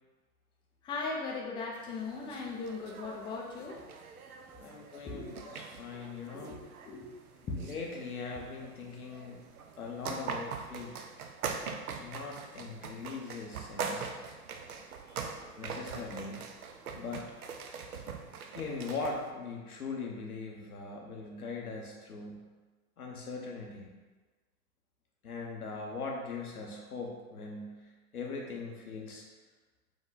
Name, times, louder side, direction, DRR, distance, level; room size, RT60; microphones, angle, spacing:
voice 1, 0.8-3.8 5.0-5.3 5.9-6.1 6.3-6.6 6.8-7.1 7.4-7.6, left 4 dB, 10° left, -1 dB, 0.4 m, -38 dB
sound 1, 1.8-19.3, right 5 dB, 80° right, 0.6 m, -43 dB
voice 2, 4.6-6.5 7.6-9.4 9.8-11.1 11.8-14.1 15.1-15.3 15.6-16.4 16.9-17.6 17.9-18.0 18.5-22.5 23.0-23.9 25.2-27.8 28.1-29.2, left 4 dB, 90° left, 0 dB, 1.0 m, -41 dB
5.0 x 2.3 x 4.0 m, 1.3 s
hypercardioid pair, 105°, 43 cm